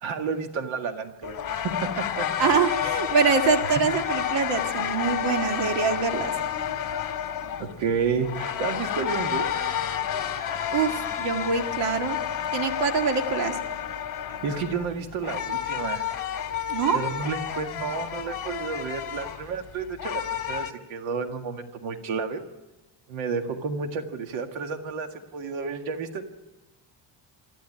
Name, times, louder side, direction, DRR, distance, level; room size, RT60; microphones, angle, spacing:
voice 1, 0.0-2.6 7.6-9.5 14.3-16.1 16.9-22.4 23.1-26.2, right 5 dB, 85° right, 6 dB, 2.0 m, -31 dB
sound 1, 1.2-20.7, left 9 dB, 40° left, 2.2 m, -30 dB
voice 2, 2.4-6.3 10.7-12.2 12.5-13.6 16.7-17.0, right 5 dB, 65° right, 5 dB, 2.0 m, -24 dB
22.5 x 14.5 x 9.9 m, 1.1 s
cardioid pair, 165°, 45 cm